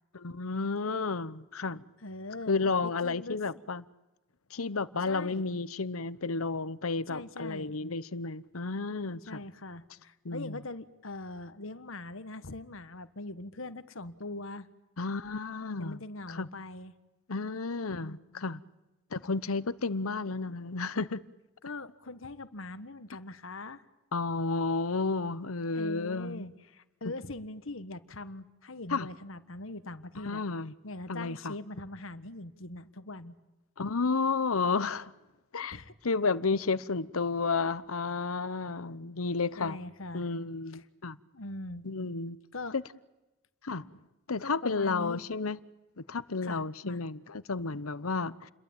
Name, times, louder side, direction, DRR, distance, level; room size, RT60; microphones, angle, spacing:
voice 1, 0.1-1.8 2.5-3.8 4.5-9.4 10.2-10.6 15.0-16.0 16.3-16.5 17.3-18.6 19.1-21.2 24.1-26.5 28.9-29.1 30.2-30.7 31.1-31.5 33.8-35.1 35.5-35.8 36.0-39.8 40.1-41.2 41.8-42.4 42.7-42.8 43.6-43.9 44.3-45.6 46.1-48.5, left 4 dB, 85° left, 1.0 m, -32 dB
voice 2, 2.0-3.4 5.1-5.5 7.1-7.8 9.3-14.7 15.8-16.9 18.0-18.4 21.6-23.8 25.7-30.4 30.8-33.4 35.7-35.9 39.6-40.3 40.7-40.8 41.3-41.8 42.5-42.7 44.4-45.2 46.4-47.0, left 2 dB, 70° left, 1.5 m, -42 dB
29.5 x 22.5 x 8.9 m
head